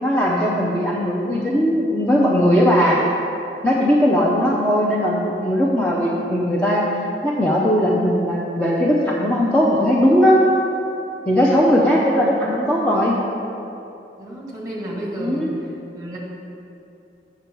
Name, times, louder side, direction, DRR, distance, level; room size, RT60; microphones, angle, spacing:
voice 1, 0.0-3.0 3.6-6.9 7.2-10.4 11.3-13.1 15.2-15.5, equal, 5° left, -6 dB, 0.6 m, -18 dB
voice 2, 14.2-15.6 15.9-16.2, right 1 dB, 20° right, -4 dB, 1.7 m, -31 dB
8.0 x 6.9 x 4.5 m, 2.8 s
head